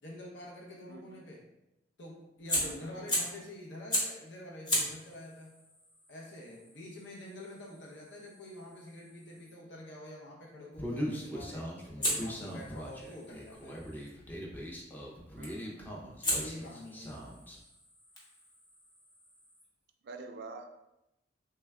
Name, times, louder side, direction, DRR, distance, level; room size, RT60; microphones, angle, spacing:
voice 1, 0.0-1.4 2.0-5.5 6.1-11.7 12.0-13.8 16.3-17.2, left 1 dB, 80° left, -2 dB, 0.7 m, -47 dB
voice 2, 0.9-1.2 2.6-3.2 15.4-15.9 20.0-20.7, right 3 dB, 60° right, 5 dB, 0.4 m, -47 dB
Fire, 2.5-3.4 3.9-4.2 4.6-9.6 12.0-14.1 15.4-15.7 16.2-19.7, equal, 25° left, 0.9 m, -38 dB
Human voice, 10.8-17.6, equal, 10° left, 0.4 m, -40 dB
3.2 x 2.2 x 3.4 m, 0.90 s
head